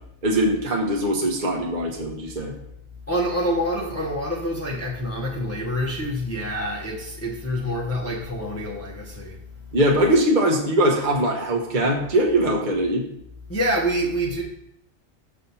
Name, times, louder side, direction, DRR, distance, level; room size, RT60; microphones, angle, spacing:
voice 1, 0.2-2.5 9.7-13.0, right 1 dB, 40° right, 0 dB, 1.0 m, -21 dB
voice 2, 3.1-9.4 13.5-14.4, equal, 15° left, -3 dB, 0.8 m, -26 dB
6.4 x 4.3 x 5.4 m, 0.76 s
omnidirectional pair, 1.3 m